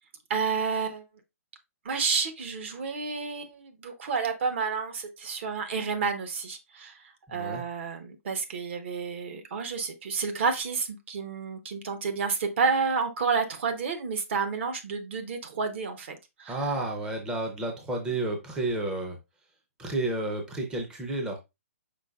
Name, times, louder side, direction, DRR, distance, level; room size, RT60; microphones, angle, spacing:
voice 1, 0.3-1.0 1.8-7.0 7.3-16.6, right 5 dB, 50° right, 7 dB, 1.0 m, -30 dB
voice 2, 7.3-7.6 16.5-19.2 19.8-21.4, right 2 dB, 10° right, 2 dB, 0.5 m, -31 dB
5.1 x 3.9 x 2.3 m, 0.22 s
hypercardioid pair, 155°, 8 cm